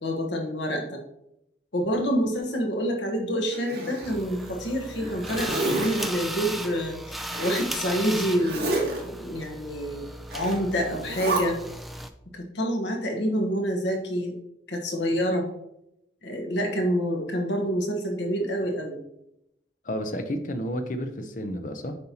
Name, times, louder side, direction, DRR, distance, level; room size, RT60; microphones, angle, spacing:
voice 1, 0.0-1.0 1.7-10.0 10.3-11.6 12.3-14.3 14.7-15.5 16.2-19.0, equal, 80° left, 2 dB, 1.2 m, -27 dB
Zipper (clothing), 3.5-4.5 4.9-6.1 7.3-7.7 8.4-9.0 10.3-10.6 11.0-11.4, right 2 dB, 65° right, 1.9 m, -30 dB
sound 1, 4.0-12.1, right 1 dB, ahead, 0.3 m, -36 dB
voice 2, 19.8-22.0, equal, 45° left, 7 dB, 0.7 m, -31 dB
7.7 x 5.5 x 2.9 m, 0.81 s
head